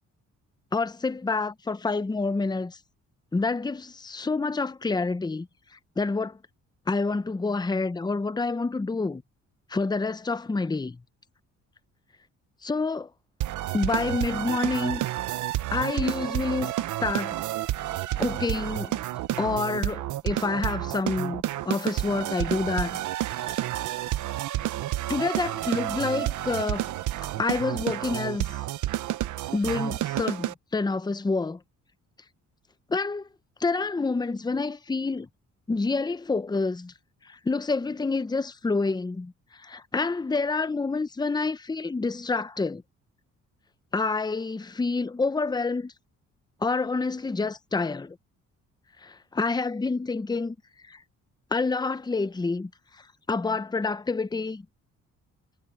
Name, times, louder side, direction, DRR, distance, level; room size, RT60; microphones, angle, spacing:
voice 1, 0.7-2.8 3.3-5.5 6.0-6.4 6.9-9.2 9.7-11.0 12.6-13.1 13.7-15.0 15.7-16.7 17.0-17.4 18.2-18.9 19.4-23.0 23.3-23.4 25.1-26.9 27.4-28.5 29.5-31.6 32.9-33.3 33.6-35.3 35.7-36.9 37.2-42.8 43.9-45.9 46.6-48.2 49.0-50.6 50.8-51.0 51.5-52.7 53.3-54.7, left 3 dB, 15° left, 0.8 m, -28 dB
sound 1, 13.4-30.5, right 14 dB, 80° right, 1.0 m, -30 dB
cardioid pair, 90°, 30 cm